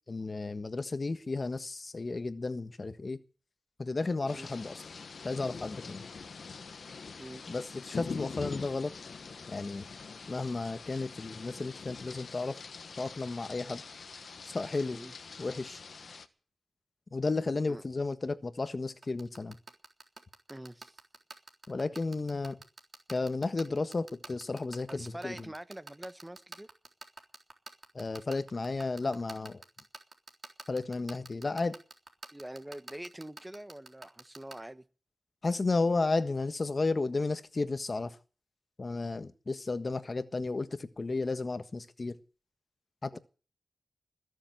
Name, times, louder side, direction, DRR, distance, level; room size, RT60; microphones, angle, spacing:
voice 1, 0.1-3.2 3.8-4.8 5.2-6.0 7.5-8.9 9.5-9.9 10.3-12.6 13.0-13.8 14.4-15.0 15.4-15.8 17.1-19.6 21.7-22.6 23.1-25.5 27.9-29.6 30.7-31.8 35.4-38.2 38.8-42.1 43.0-43.2, left 3 dB, 45° left, 1.4 m, -33 dB
sound 1, 4.3-16.3, left 5 dB, 75° left, 1.3 m, -44 dB
sound 2, 19.0-34.5, right 3 dB, 45° right, 3.7 m, -45 dB
voice 2, 20.5-21.0 24.9-26.7 32.3-34.8 43.1-43.2, right 1 dB, 15° right, 1.2 m, -44 dB
21.0 x 7.3 x 9.3 m
cardioid pair, 60°, 0 cm